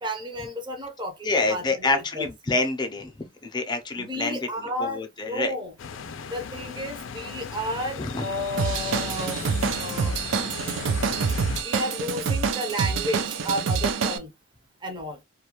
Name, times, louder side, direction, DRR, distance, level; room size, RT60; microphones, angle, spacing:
voice 1, 0.0-2.3 4.0-5.7 6.3-9.4 9.8-10.2 11.6-14.3 14.8-15.2, equal, 25° right, 0.6 m, -32 dB
voice 2, 1.2-3.1 3.4-5.5 8.0-8.2, left 3 dB, 25° left, 0.5 m, -27 dB
sound 1, 5.8-11.6, left 5 dB, 90° left, 0.4 m, -36 dB
Drum kit / Drum, 8.6-14.2, right 5 dB, 70° right, 0.4 m, -26 dB
2.4 x 2.2 x 2.9 m
head